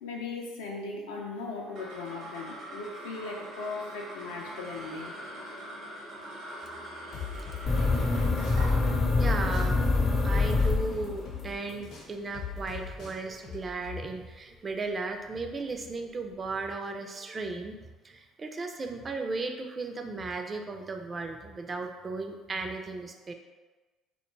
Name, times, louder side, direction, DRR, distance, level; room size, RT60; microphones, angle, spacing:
voice 1, 0.0-5.1, left 3 dB, 85° left, 0 dB, 0.4 m, -38 dB
sound 1, 1.5-12.1, right 1 dB, 65° right, 0.7 m, -44 dB
sound 2, 7.1-9.2 9.5-14.1, left 7 dB, 65° left, 0.8 m, -41 dB
sound 3, 7.7-11.4, left 3 dB, 25° left, 0.4 m, -25 dB
voice 2, 9.2-9.8 10.2-17.8 18.0-23.3, right 3 dB, 35° right, 4 dB, 0.3 m, -35 dB
2.2 x 2.2 x 3.1 m, 1.2 s
hypercardioid pair, 60°, 0 cm